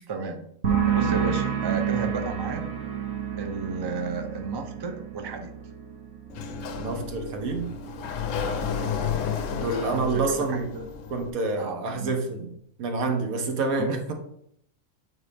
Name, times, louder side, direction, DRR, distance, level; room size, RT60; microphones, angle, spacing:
voice 1, 0.1-0.5 0.8-2.6 3.4-5.6 8.4-8.6 9.8-10.9 11.6-12.2 13.8-14.0, right 3 dB, 35° right, 5 dB, 0.4 m, -33 dB
sound 1, 0.6-8.1 8.4-8.9, right 8 dB, 50° right, 1.3 m, -30 dB
Sliding door, 6.3-11.3, left 6 dB, 70° left, 1.0 m, -32 dB
voice 2, 6.8-7.7 8.6-8.8 9.5-10.7 11.1-12.5 12.8-14.1, right 3 dB, 80° right, 4 dB, 1.4 m, -28 dB
7.9 x 4.1 x 3.4 m, 0.72 s
omnidirectional pair, 1.4 m